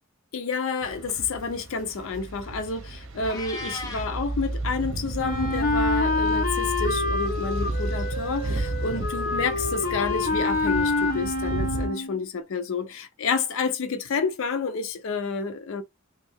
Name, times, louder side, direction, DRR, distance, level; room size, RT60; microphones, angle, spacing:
voice 1, 0.3-15.8, left 4 dB, 70° left, 0.5 m, -29 dB
sound 1, 0.8-11.9, right 2 dB, 65° right, 0.8 m, -32 dB
Meow, 3.2-4.1, left 2 dB, 20° left, 0.9 m, -35 dB
Wind instrument woodwind instrument, 5.2-12.2, left 3 dB, 40° left, 1.2 m, -27 dB
3.2 x 2.6 x 3.4 m
head